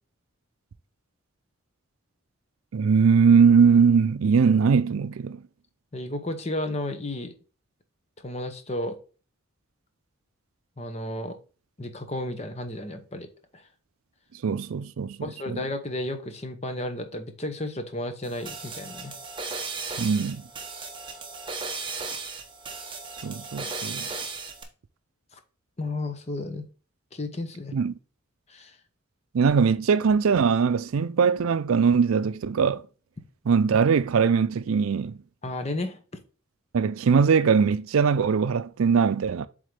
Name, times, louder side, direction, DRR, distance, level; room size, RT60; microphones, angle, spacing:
voice 1, 2.7-5.4 14.4-15.6 20.0-20.4 23.2-24.1 27.7-27.9 29.3-32.8 33.5-35.2 36.7-39.5, right 6 dB, 80° right, 0.4 m, -21 dB
voice 2, 5.9-7.4 8.2-9.0 10.8-11.4 11.8-13.6 15.2-19.1 25.3-25.4 25.8-26.7 27.1-27.7 28.5-28.8 35.4-36.0, left 1 dB, 30° left, 0.9 m, -33 dB
sound 1, 18.2-24.6, right 4 dB, 25° right, 0.9 m, -36 dB
7.8 x 3.7 x 3.3 m
head